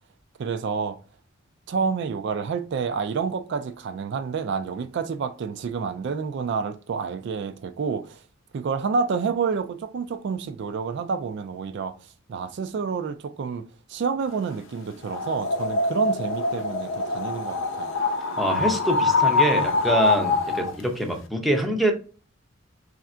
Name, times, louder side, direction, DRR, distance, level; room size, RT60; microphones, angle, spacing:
voice 1, 0.4-1.0 1.7-8.2 8.5-11.9 12.3-13.6 13.9-18.0, right 5 dB, 55° right, 0.3 m, -29 dB
sound 1, 15.0-20.8, left 3 dB, 65° left, 0.6 m, -24 dB
voice 2, 18.4-21.9, right 1 dB, ahead, 0.6 m, -25 dB
3.4 x 2.5 x 4.2 m
head